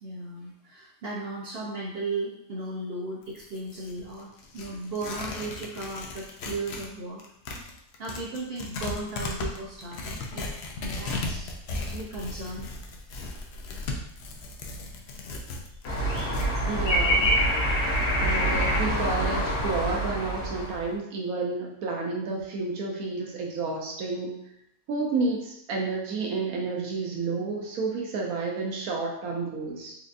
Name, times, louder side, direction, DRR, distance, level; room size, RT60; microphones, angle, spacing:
voice 1, 0.0-7.2 8.0-10.5 10.8-12.7, right 2 dB, 60° right, -4 dB, 0.7 m, -36 dB
Tearing, 3.2-6.9 7.2-16.5, left 2 dB, 65° left, 0.7 m, -36 dB
sound 1, 15.8-20.8, equal, 85° left, 1.6 m, -25 dB
voice 2, 16.7-17.3 18.2-24.3 24.9-30.0, right 3 dB, 85° right, -1 dB, 1.1 m, -30 dB
4.3 x 2.5 x 2.5 m, 0.78 s
omnidirectional pair, 1.5 m